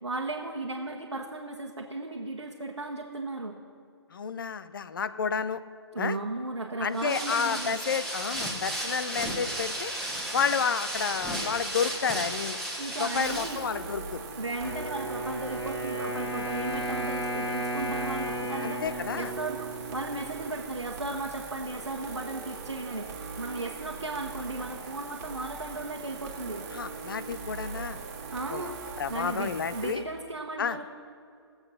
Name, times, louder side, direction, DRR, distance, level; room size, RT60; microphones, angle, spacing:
voice 1, 0.0-3.6 5.9-7.8 12.8-13.6 14.4-18.8 19.2-26.6 28.3-28.8 29.1-30.8, right 2 dB, 85° right, -1 dB, 1.3 m, -35 dB
voice 2, 4.1-5.6 6.0-6.2 6.8-9.9 10.3-12.6 13.0-14.2 18.6-19.3 26.7-28.0 28.5-28.7 29.0-30.0 30.6-30.8, left 6 dB, 50° left, 13 dB, 0.6 m, -30 dB
sound 1, 6.9-13.6, right 1 dB, ahead, 1.4 m, -34 dB
sound 2, 13.2-29.9, right 5 dB, 35° right, 1.8 m, -41 dB
Wind instrument woodwind instrument, 14.6-20.6, right 1 dB, 75° left, 3.2 m, -34 dB
17.0 x 7.9 x 5.8 m, 2.4 s
figure-of-eight pair, 140°, 14 cm